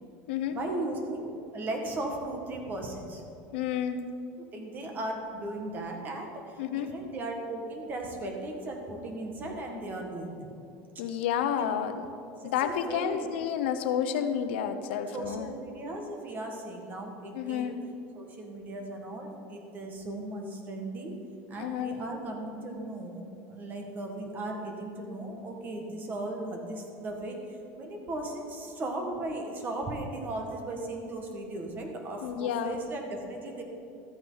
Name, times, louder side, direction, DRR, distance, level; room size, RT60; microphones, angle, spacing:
voice 1, 0.5-3.2 4.5-10.5 12.4-13.3 15.1-17.7 18.2-21.1 21.5-33.6, right 2 dB, 30° right, 2 dB, 1.7 m, -37 dB
voice 2, 3.5-4.0 6.6-6.9 11.0-12.1 12.4-15.5 17.3-17.8 21.6-22.0 32.2-32.8, left 9 dB, 90° left, 9 dB, 0.7 m, -30 dB
13.0 x 8.8 x 4.0 m, 2.7 s
supercardioid pair, 140°, 6 cm